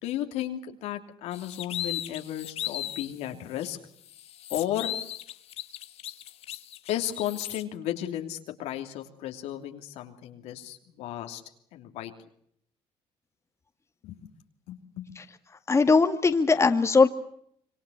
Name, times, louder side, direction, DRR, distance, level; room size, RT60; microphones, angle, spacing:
voice 1, 0.0-3.8 4.5-4.9 6.9-11.4 11.7-12.1 14.0-14.3 14.7-15.1, left 12 dB, 85° left, 5 dB, 3.1 m, -34 dB
sound 1, 1.3-3.1 3.6-3.7 4.1-7.6, left 12 dB, 65° left, 1.4 m, -37 dB
voice 2, 15.7-17.1, left 4 dB, 25° left, 7 dB, 2.1 m, -20 dB
26.5 x 23.5 x 6.5 m, 0.69 s
cardioid pair, 95°, 11 cm